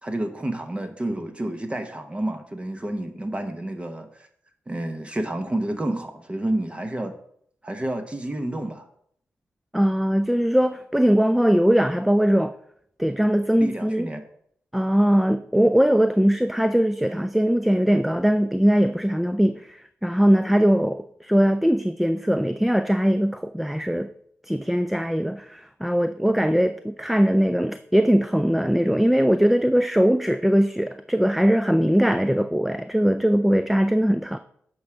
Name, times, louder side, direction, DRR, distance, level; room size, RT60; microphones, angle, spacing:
voice 1, 0.0-4.3 4.7-7.1 7.6-8.9 13.6-14.2, right 1 dB, 20° right, 1.0 m, -29 dB
voice 2, 9.7-12.5 13.0-14.1 14.7-24.1 24.5-34.4, equal, 5° right, 0.3 m, -20 dB
8.0 x 4.7 x 4.9 m
cardioid pair, 70°, 5 cm